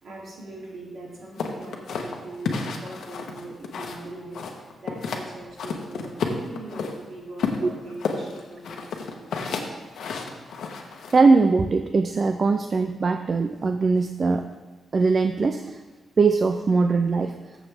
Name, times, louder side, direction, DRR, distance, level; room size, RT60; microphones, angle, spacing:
voice 1, 0.0-9.6, right 2 dB, 55° right, -4 dB, 3.0 m, -40 dB
sound 1, 1.4-4.1 4.3-5.3 5.6-6.9 7.4-11.2, left 5 dB, 85° left, 1.1 m, -31 dB
voice 2, 11.1-14.5 14.9-15.8 16.2-17.4, right 4 dB, 35° right, 8 dB, 0.4 m, -21 dB
14.0 x 7.1 x 3.5 m, 1.3 s
wide cardioid pair, 165°, 0 cm